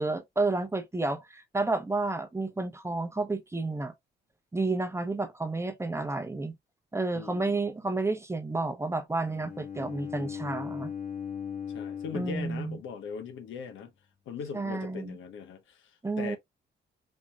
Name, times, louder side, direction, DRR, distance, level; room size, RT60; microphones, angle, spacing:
voice 1, 0.0-3.9 4.5-6.5 6.9-10.9 12.1-12.8 14.5-15.2 16.0-16.4, right 3 dB, 15° right, 0.8 m, -31 dB
voice 2, 7.1-7.6 11.7-13.9 14.3-15.9 16.2-16.4, left 6 dB, 80° left, 1.2 m, -40 dB
Bowed string instrument, 9.2-13.3, left 8 dB, 45° left, 1.6 m, -39 dB
5.2 x 2.9 x 2.3 m
cardioid pair, 100°, 20 cm